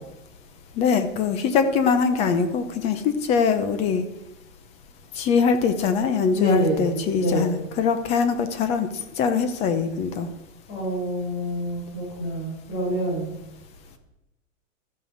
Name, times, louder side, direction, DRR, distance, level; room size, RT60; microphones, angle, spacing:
voice 1, 0.8-4.0 5.2-8.9 9.2-10.3, left 6 dB, 15° left, 10 dB, 0.7 m, -22 dB
voice 2, 6.3-7.6 10.7-13.3, equal, 35° left, -3 dB, 6.4 m, -26 dB
13.0 x 9.1 x 6.5 m, 0.92 s
supercardioid pair, 170°, 38 cm